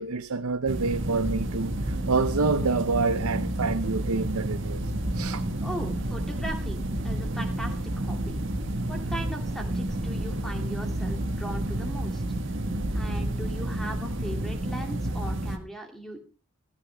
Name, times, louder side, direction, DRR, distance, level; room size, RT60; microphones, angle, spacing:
voice 1, 0.0-5.4, right 4 dB, 85° right, 0.7 m, -27 dB
sound 1, 0.7-15.6, right 1 dB, 55° right, 1.7 m, -30 dB
voice 2, 5.6-8.4 8.9-12.2 12.9-16.2, right 1 dB, ahead, 2.5 m, -39 dB
16.0 x 14.0 x 3.4 m
head